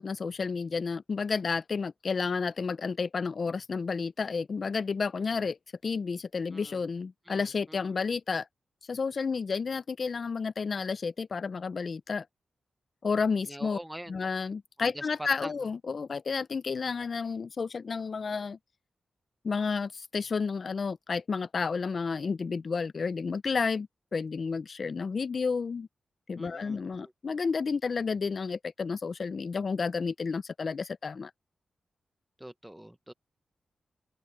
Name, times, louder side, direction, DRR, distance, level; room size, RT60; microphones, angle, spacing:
voice 1, 0.0-5.6 5.8-8.5 8.9-12.2 13.0-13.8 14.1-18.6 19.4-25.9 26.3-31.3, left 5 dB, 45° left, 0.5 m, -31 dB
voice 2, 13.5-14.1 14.8-14.9 15.2-15.5 26.4-26.8 32.4-33.1, right 1 dB, 5° right, 0.6 m, -43 dB
wide cardioid pair, 130°, 0 cm